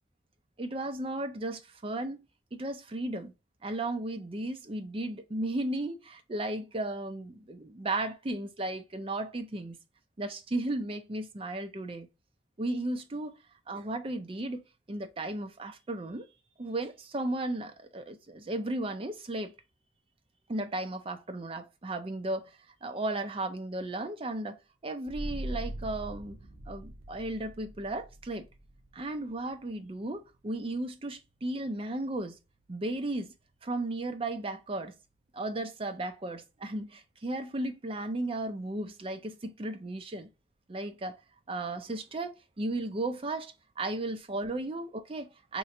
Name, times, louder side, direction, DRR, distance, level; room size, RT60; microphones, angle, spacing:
voice 1, 0.6-2.2 2.5-3.3 3.6-9.8 10.2-12.1 12.6-13.3 13.7-14.6 14.9-16.3 16.6-19.5 20.5-22.5 22.8-24.6 24.8-26.4 26.7-28.5 28.9-32.4 32.7-33.3 33.6-34.9 35.3-40.3 40.7-41.2 41.5-45.6, right 2 dB, 30° right, 0.5 m, -35 dB
sound 1, 25.0-36.3, right 1 dB, 75° right, 0.7 m, -45 dB
3.3 x 3.0 x 2.6 m
head